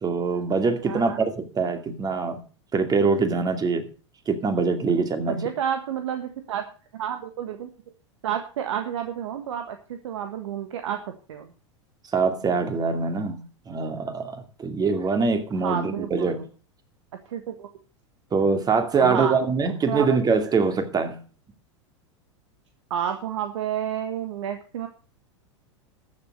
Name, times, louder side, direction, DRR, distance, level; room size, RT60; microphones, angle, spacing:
voice 1, 0.0-2.4 2.7-3.9 4.3-5.5 12.1-16.5 18.3-21.2, right 4 dB, 25° right, 8 dB, 2.4 m, -24 dB
voice 2, 0.9-1.2 5.2-6.7 6.9-7.7 8.2-11.0 11.3-11.5 15.6-16.4 17.2-17.7 19.0-19.4 19.9-20.2 22.9-24.9, right 9 dB, 75° right, 7 dB, 1.5 m, -30 dB
13.5 x 7.4 x 6.5 m, 0.38 s
hypercardioid pair, 100°, 16 cm